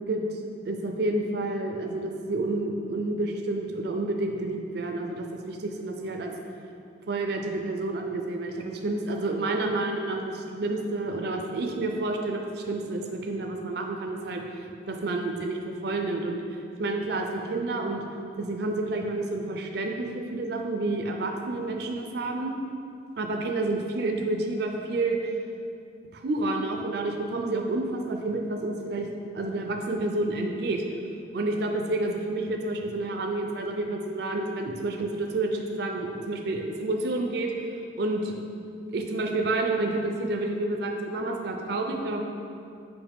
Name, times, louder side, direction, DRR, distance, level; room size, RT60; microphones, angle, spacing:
voice 1, 0.1-0.4 0.7-6.3 7.1-16.4 16.8-18.0 18.4-22.6 23.2-25.3 26.1-29.1 29.3-30.8 31.3-37.5 38.0-38.3 38.9-42.2, right 2 dB, 55° right, 2 dB, 0.5 m, -29 dB
7.0 x 5.1 x 3.6 m, 2.5 s
head